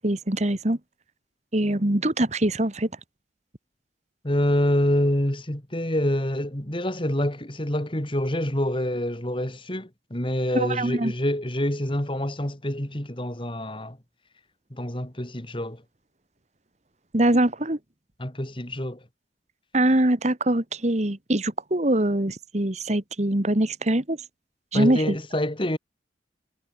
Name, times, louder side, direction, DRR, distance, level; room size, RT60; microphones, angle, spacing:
voice 1, 0.0-0.8 1.5-2.9 10.5-11.1 17.1-17.8 19.7-24.2 24.7-25.0, right 1 dB, 40° right, 1.8 m, -23 dB
voice 2, 4.2-14.0 14.7-15.8 18.2-19.0 24.7-25.8, left 1 dB, 30° left, 3.1 m, -26 dB
head